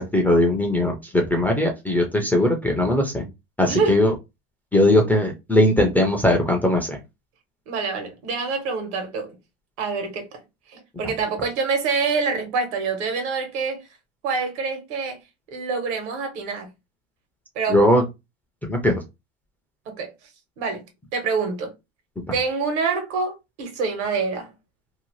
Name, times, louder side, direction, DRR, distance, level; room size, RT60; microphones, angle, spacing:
voice 1, 0.0-3.3 3.6-4.1 4.7-7.0 17.7-18.0 18.7-19.0, left 1 dB, 5° left, 0.4 m, -19 dB
voice 2, 7.7-9.4 9.8-10.3 10.7-13.8 14.2-15.2 15.5-16.7 17.5-17.8 19.9-20.1 20.6-20.8 21.1-21.7 22.3-24.5, right 4 dB, 70° right, 1.2 m, -26 dB
2.7 x 2.1 x 3.0 m
supercardioid pair, 130°, 35 cm